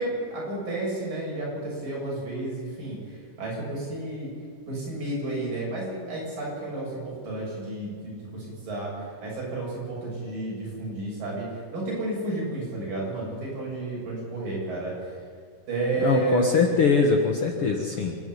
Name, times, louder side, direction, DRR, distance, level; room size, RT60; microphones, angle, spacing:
voice 1, 0.0-4.3 4.7-15.2 15.7-16.7, right 2 dB, 70° right, -4 dB, 9.1 m, -31 dB
voice 2, 16.0-18.2, left 4 dB, 55° left, 1 dB, 1.8 m, -22 dB
26.5 x 10.5 x 9.8 m, 2.1 s
omnidirectional pair, 4.0 m